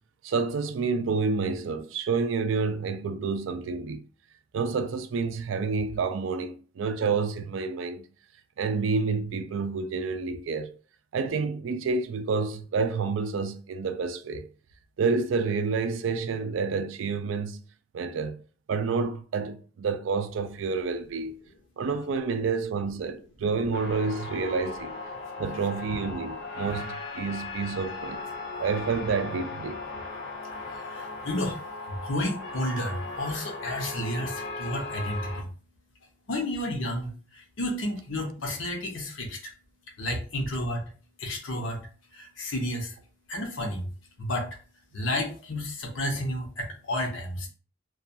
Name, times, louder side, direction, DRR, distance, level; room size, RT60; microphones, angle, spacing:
voice 1, 0.2-4.0 4.5-8.1 8.6-10.7 11.1-14.5 15.0-17.6 17.9-18.4 18.7-21.4 21.8-24.9 25.4-28.2 28.6-29.8, right 4 dB, 90° right, 0.4 m, -29 dB
sound 1, 23.7-35.4, left 3 dB, 60° left, 0.5 m, -37 dB
voice 2, 30.6-35.5 36.3-39.5 40.0-40.8 41.2-43.0 43.3-43.9 44.2-44.6 44.9-47.5, left 1 dB, 90° left, 0.8 m, -32 dB
2.3 x 2.2 x 2.6 m
head